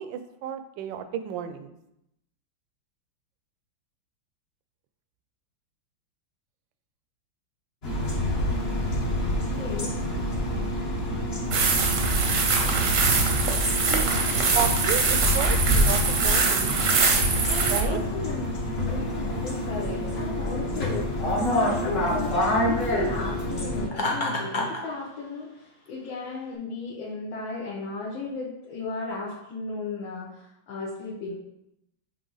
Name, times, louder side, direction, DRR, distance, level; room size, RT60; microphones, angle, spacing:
voice 1, 0.0-1.7 13.9-14.1 14.5-16.7 17.7-18.0, right 9 dB, 75° right, 10 dB, 1.2 m, -32 dB
sound 1, 7.8-23.9, left 1 dB, 35° left, 1.3 m, -27 dB
voice 2, 9.5-10.0 17.4-18.5 18.8-31.3, left 3 dB, 75° left, -6 dB, 1.9 m, -35 dB
sound 2, 11.5-17.8, right 4 dB, 55° right, 0.9 m, -23 dB
Laughter, 23.9-24.8, left 2 dB, 55° left, 0.5 m, -27 dB
7.7 x 3.1 x 3.9 m, 0.84 s
omnidirectional pair, 2.2 m